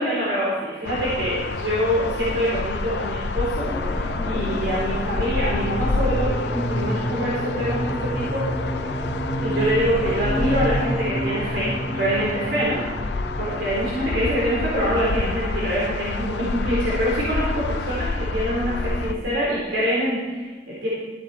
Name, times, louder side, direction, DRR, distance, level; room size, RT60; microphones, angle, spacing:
voice 1, 0.0-8.4 8.8-8.9 9.4-12.8 13.1-20.9, equal, 85° right, -7 dB, 4.1 m, -25 dB
sound 1, 0.8-19.1, left 3 dB, 70° left, 0.5 m, -28 dB
sound 2, 3.6-19.2, equal, ahead, 1.4 m, -31 dB
14.0 x 9.5 x 4.4 m, 1.3 s
head